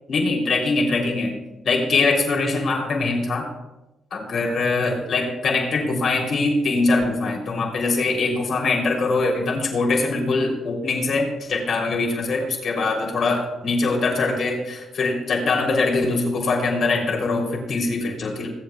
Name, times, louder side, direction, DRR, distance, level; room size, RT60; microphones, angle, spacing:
voice 1, 0.1-1.3 1.6-3.5 4.1-18.5, left 3 dB, 60° left, 1 dB, 3.1 m, -22 dB
22.0 x 8.0 x 2.3 m, 0.96 s
cardioid pair, 75°, 0 cm